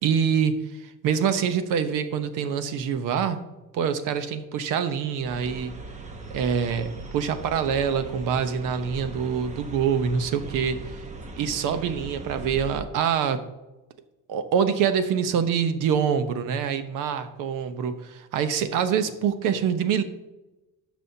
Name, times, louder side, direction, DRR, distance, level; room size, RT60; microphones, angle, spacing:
voice 1, 0.0-3.4 3.7-5.8 6.3-10.8 11.4-13.4 14.3-20.0, right 7 dB, 70° right, 10 dB, 0.9 m, -25 dB
sound 1, 5.2-12.8, right 2 dB, 20° right, 0.7 m, -39 dB
12.5 x 6.3 x 2.8 m, 1.0 s
cardioid pair, 155°, 33 cm